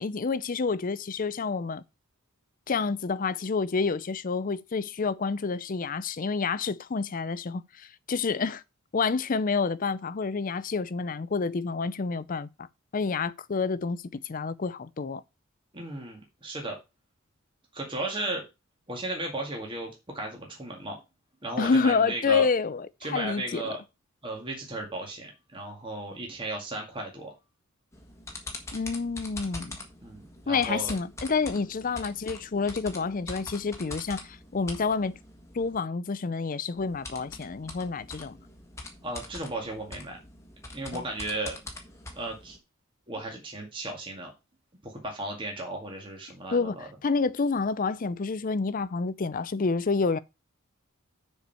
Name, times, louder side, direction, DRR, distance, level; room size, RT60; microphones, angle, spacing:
voice 1, 0.0-1.8 2.7-8.6 8.9-12.7 12.9-15.2 21.6-23.7 28.7-29.8 30.5-35.1 35.5-38.4 40.9-41.0 46.5-50.2, left 4 dB, 40° left, 0.5 m, -28 dB
voice 2, 15.7-16.8 17.7-18.4 18.9-21.0 21.4-22.5 23.0-23.8 24.2-27.4 30.0-30.9 39.0-40.2 40.7-41.5 42.2-42.6 43.1-44.3 44.8-46.9, right 2 dB, 25° right, 1.9 m, -35 dB
sound 1, 27.9-35.8 36.7-42.6, left 2 dB, 15° left, 1.5 m, -43 dB
7.0 x 4.6 x 6.9 m
head